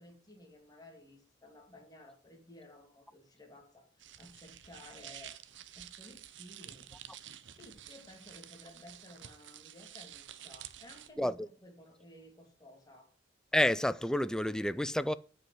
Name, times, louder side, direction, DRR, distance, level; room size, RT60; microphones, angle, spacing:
voice 1, 0.0-5.4 5.8-6.9 7.5-13.1, left 1 dB, 20° left, 2.4 m, -55 dB
sound 1, 4.0-11.1, right 11 dB, 70° right, 0.8 m, -50 dB
voice 2, 11.2-11.5 13.5-15.1, left 1 dB, 5° left, 0.4 m, -29 dB
9.5 x 5.4 x 7.8 m
head